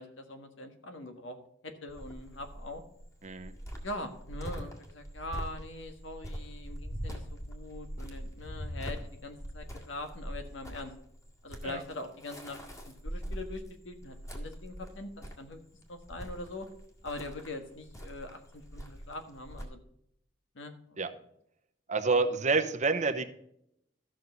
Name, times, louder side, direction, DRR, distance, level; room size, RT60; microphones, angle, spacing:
voice 1, 0.0-1.4 1.6-2.8 3.8-10.9 11.4-12.6 12.9-15.6 15.9-16.7 17.0-19.8 20.5-21.1 22.1-22.3, left 2 dB, 75° left, 6 dB, 1.6 m, -42 dB
Cricket, 1.9-19.7, equal, 15° left, 1.9 m, -42 dB
voice 2, 21.9-23.2, right 4 dB, 40° right, 8 dB, 0.9 m, -28 dB
13.5 x 6.4 x 4.1 m, 0.75 s
head